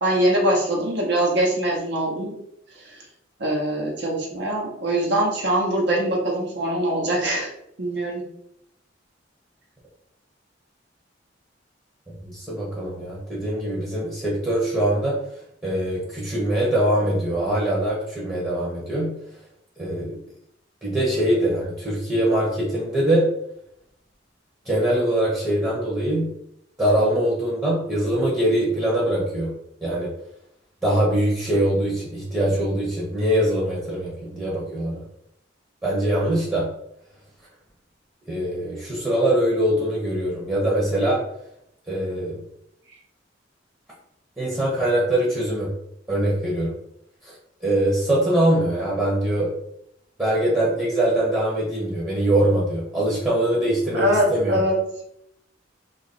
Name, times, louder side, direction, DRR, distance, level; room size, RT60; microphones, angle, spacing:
voice 1, 0.0-2.3 2.8-3.0 3.4-7.5 7.8-8.2 53.9-54.7, right 1 dB, 65° right, -2 dB, 0.9 m, -23 dB
voice 2, 12.2-15.2 15.6-19.1 19.8-20.2 20.8-23.3 24.7-26.3 26.8-29.5 29.8-30.1 30.8-35.0 35.8-36.7 38.3-41.2 41.9-42.4 44.4-45.7 46.1-46.7 47.2-47.3 47.6-49.5 50.2-54.6, right 1 dB, 10° right, -7 dB, 0.8 m, -23 dB
2.9 x 2.5 x 4.1 m, 0.76 s
head